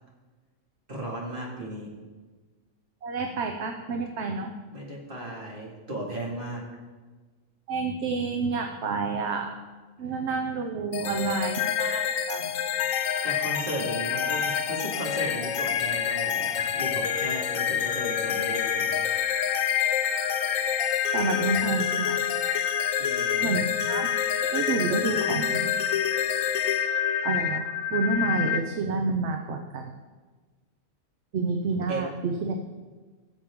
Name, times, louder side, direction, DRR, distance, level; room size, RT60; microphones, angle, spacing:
voice 1, 0.9-1.9 4.7-6.6 13.2-18.9 23.0-23.5 31.9-32.1, right 1 dB, 40° right, -3 dB, 2.5 m, -35 dB
voice 2, 3.0-4.5 7.7-9.5 10.0-12.6 21.1-22.2 23.4-24.1 24.5-25.7 27.2-29.9 31.3-32.6, right 4 dB, 60° right, 4 dB, 1.0 m, -29 dB
sound 1, 10.9-28.6, left 9 dB, 80° left, 1.1 m, -27 dB
16.5 x 7.3 x 3.7 m, 1.4 s
omnidirectional pair, 1.4 m